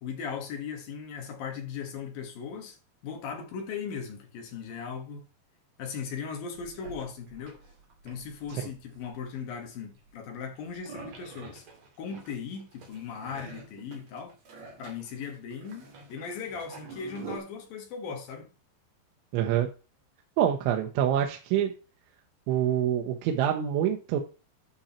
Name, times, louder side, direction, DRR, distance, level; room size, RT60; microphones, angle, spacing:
voice 1, 0.0-2.8 3.0-5.2 5.8-7.6 8.0-11.7 12.0-14.3 14.8-18.5, left 6 dB, 60° left, 3.1 m, -38 dB
sound 1, 6.5-9.4 10.0-17.4, right 4 dB, 45° right, 3.0 m, -47 dB
voice 2, 19.3-19.7 20.4-21.7 22.5-24.2, right 10 dB, 90° right, 3.4 m, -26 dB
12.0 x 5.1 x 4.4 m
omnidirectional pair, 5.2 m